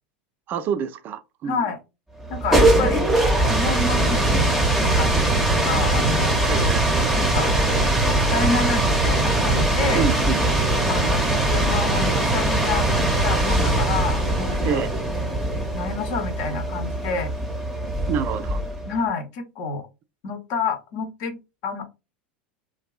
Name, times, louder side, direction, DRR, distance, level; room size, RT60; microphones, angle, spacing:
voice 1, 0.5-1.6 6.4-6.9 9.9-10.7 14.6-14.9 18.1-18.6, right 7 dB, 35° right, 0.3 m, -27 dB
voice 2, 1.4-1.8 2.3-3.1 3.4-4.4 4.7-6.4 7.1-7.5 8.1-10.1 10.9-14.9 15.7-17.3 18.8-19.8 20.2-21.4 21.6-21.8, left 4 dB, 50° left, 0.7 m, -28 dB
sound 1, 2.2-18.9, right 2 dB, ahead, 0.7 m, -21 dB
2.6 x 2.3 x 2.3 m
figure-of-eight pair, 85°, 6 cm